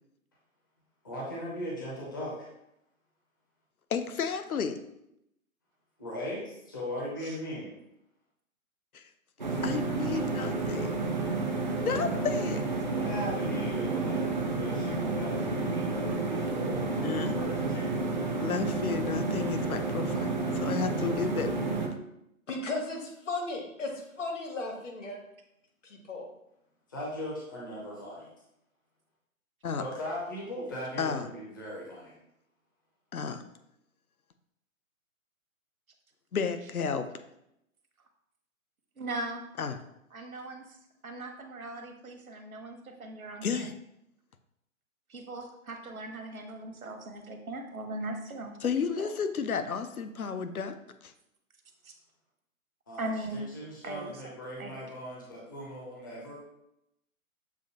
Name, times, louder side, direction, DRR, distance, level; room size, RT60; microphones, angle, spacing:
voice 1, 1.0-2.5 6.0-7.7 12.9-16.8 17.3-17.9 26.9-28.3 29.8-32.2 52.9-56.4, equal, 15° left, -5 dB, 0.5 m, -39 dB
voice 2, 3.9-4.8 8.9-9.0 9.6-11.0 11.7-12.6 17.0-17.4 18.4-21.5 29.6-29.8 31.0-31.3 33.1-33.4 36.3-37.1 39.6-39.8 43.4-43.7 48.6-50.7 51.0-51.1, left 6 dB, 80° left, 9 dB, 0.6 m, -32 dB
sound 1, 9.4-21.9, right 3 dB, 35° right, 0.4 m, -30 dB
voice 3, 22.5-25.2 25.8-26.3, left 2 dB, 60° left, 1 dB, 1.2 m, -35 dB
voice 4, 39.0-39.4 40.1-40.8 41.0-43.7 45.1-48.6 49.0-49.1 51.8-51.9 53.0-53.4 53.8-54.8, right 2 dB, 75° right, 4 dB, 0.9 m, -39 dB
6.9 x 2.5 x 2.8 m, 0.81 s
figure-of-eight pair, 130°, 43 cm